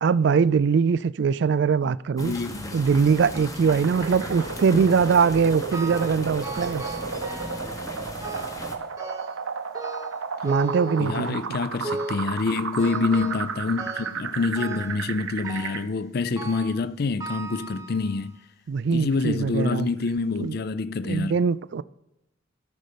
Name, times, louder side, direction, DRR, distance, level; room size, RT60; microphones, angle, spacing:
voice 1, 0.0-2.3 2.7-6.8 10.4-11.4 18.7-19.9 20.4-20.6 21.0-21.8, right 6 dB, 55° right, 0.3 m, -22 dB
voice 2, 2.2-2.8 4.7-4.8 11.0-18.3 18.9-21.4, left 4 dB, 50° left, 0.4 m, -27 dB
sound 1, 2.2-8.8, left 1 dB, 15° left, 0.9 m, -37 dB
sound 2, 3.8-15.8, right 5 dB, 80° right, 0.8 m, -33 dB
sound 3, 5.7-6.2 6.4-7.7 8.2-8.6 9.0-9.4 9.7-11.4 11.8-12.3 12.8-13.5 13.8-14.2 14.6-15.0 15.4-15.9 16.4-16.8 17.2-18.3 18.9-19.0 19.8-19.9 20.4-20.5, right 2 dB, 15° right, 1.0 m, -36 dB
13.0 x 5.4 x 5.0 m
head